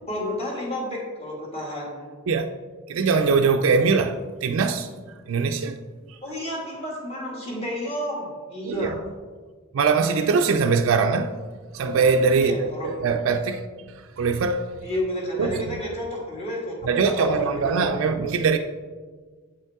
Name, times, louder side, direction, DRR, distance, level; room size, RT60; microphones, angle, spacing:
voice 1, 0.1-2.1 6.2-9.0 12.4-13.0 14.8-16.8 17.1-17.9, left 1 dB, 30° left, 1.9 m, -31 dB
voice 2, 2.9-4.9 5.3-5.8 8.6-8.9 9.7-11.3 11.7-13.6 14.2-14.7 15.4-15.6 16.9-18.6, right 5 dB, 70° right, 0.4 m, -22 dB
8.2 x 5.4 x 3.5 m
head